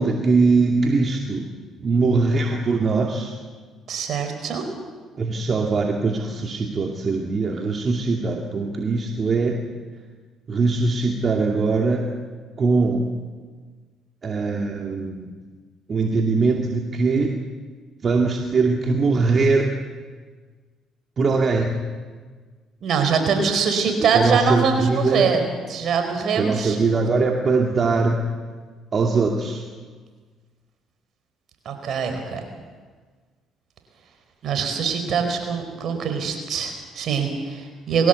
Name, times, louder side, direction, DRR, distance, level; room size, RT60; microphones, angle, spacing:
voice 1, 0.0-1.5 1.8-3.3 5.2-9.6 10.5-12.1 12.6-13.1 14.2-15.2 15.9-17.4 18.0-19.7 21.2-21.8 23.9-25.3 26.3-28.2 28.9-29.6, right 3 dB, 45° right, 1 dB, 2.5 m, -21 dB
voice 2, 3.9-4.6 22.8-25.4 25.7-26.8 31.6-32.4 34.4-38.1, right 6 dB, 60° right, 6 dB, 4.6 m, -23 dB
22.0 x 17.0 x 8.3 m, 1.5 s
supercardioid pair, 65°, 0 cm